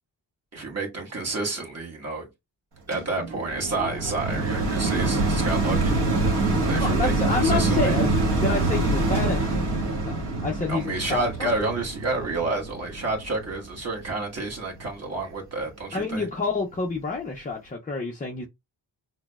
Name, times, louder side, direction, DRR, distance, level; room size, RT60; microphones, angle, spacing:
voice 1, 0.5-2.3 2.9-6.0 6.6-8.0 10.7-16.3, right 2 dB, 30° right, 1.2 m, -30 dB
sound 1, 2.9-14.2 14.8-14.9, right 2 dB, 60° right, 1.2 m, -25 dB
voice 2, 6.8-8.1 8.4-9.6 10.0-11.5 15.9-18.5, left 4 dB, 20° left, 0.3 m, -28 dB
6.0 x 2.0 x 2.2 m
wide cardioid pair, 125°, 46 cm